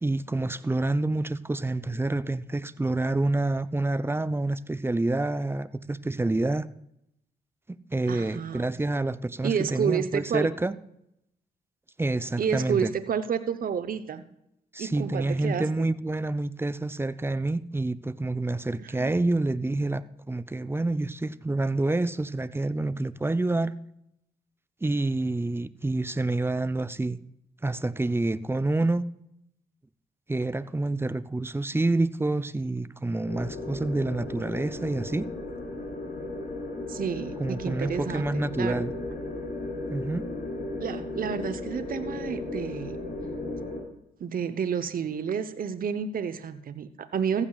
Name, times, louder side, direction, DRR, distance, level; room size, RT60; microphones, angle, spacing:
voice 1, 0.0-6.7 7.7-10.7 12.0-12.9 14.7-23.7 24.8-27.2 27.6-29.1 30.3-35.3 37.4-38.9 39.9-40.3, right 2 dB, 15° right, 0.6 m, -28 dB
voice 2, 8.1-8.7 9.4-10.5 12.4-14.2 14.8-15.9 18.8-19.1 36.9-38.8 40.8-43.0 44.2-47.5, right 7 dB, 50° right, 0.9 m, -30 dB
sound 1, 33.3-43.8, left 2 dB, 60° left, 4.8 m, -35 dB
15.0 x 15.0 x 2.4 m
hypercardioid pair, 45°, 18 cm